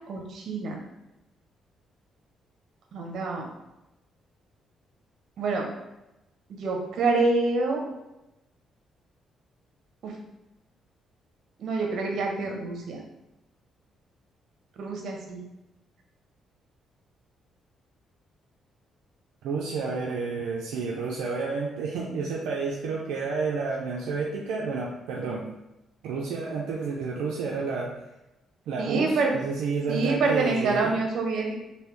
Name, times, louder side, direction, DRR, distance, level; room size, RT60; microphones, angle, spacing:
voice 1, 0.1-0.8 2.9-3.5 5.4-5.6 6.6-7.8 10.0-10.1 11.6-13.0 14.8-15.4 28.8-29.3 29.9-31.6, right 3 dB, 65° right, 1 dB, 0.8 m, -26 dB
voice 2, 19.4-25.5 26.0-27.9 28.7-31.0, right 4 dB, 90° right, -2 dB, 0.4 m, -30 dB
3.4 x 2.7 x 3.0 m, 0.95 s
cardioid pair, 90°, 0 cm